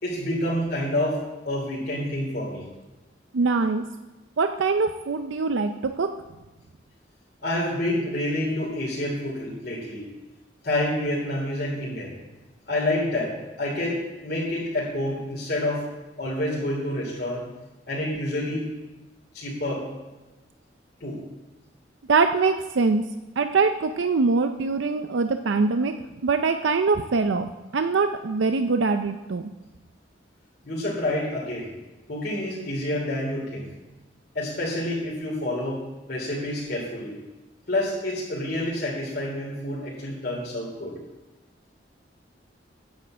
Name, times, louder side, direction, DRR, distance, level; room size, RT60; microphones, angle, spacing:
voice 1, 0.0-2.6 7.4-10.1 10.6-12.1 12.7-15.9 16.2-17.4 17.9-18.7 19.3-19.8 21.0-21.2 30.6-31.7 32.1-33.7 34.3-35.8 36.1-37.2 37.7-40.9, left 1 dB, 55° left, -5 dB, 2.9 m, -28 dB
voice 2, 3.3-3.8 4.4-6.1 22.1-23.0 23.4-25.9 26.2-29.4, right 4 dB, 90° right, 8 dB, 0.5 m, -23 dB
9.4 x 6.7 x 7.5 m, 1.1 s
head